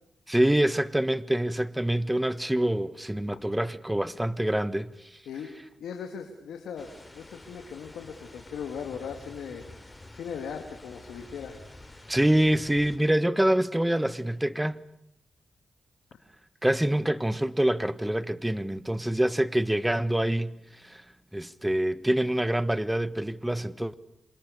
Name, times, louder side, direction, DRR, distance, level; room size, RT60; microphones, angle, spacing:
voice 1, 0.3-4.9 12.1-14.8 16.6-20.6 20.8-21.0 21.3-23.9, right 1 dB, 10° right, 1.4 m, -26 dB
voice 2, 5.3-9.7 10.1-11.6, left 7 dB, 85° left, 2.5 m, -39 dB
sound 1, 6.8-13.0, left 2 dB, 15° left, 4.3 m, -49 dB
29.0 x 26.5 x 6.7 m
cardioid pair, 60°, 0 cm